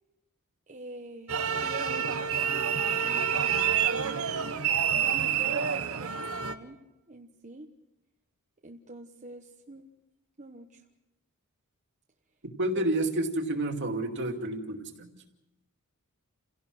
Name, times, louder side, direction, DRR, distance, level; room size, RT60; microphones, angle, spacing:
voice 1, 0.7-4.6 5.1-6.8 7.1-7.7 8.6-9.8 10.4-10.8 12.7-12.8, right 2 dB, 35° right, 1 dB, 1.2 m, -45 dB
sound 1, 1.3-6.5, right 8 dB, 70° right, 1.1 m, -28 dB
voice 2, 12.6-15.1, right 1 dB, 55° right, 3 dB, 2.5 m, -30 dB
29.5 x 17.0 x 6.2 m, 0.97 s
head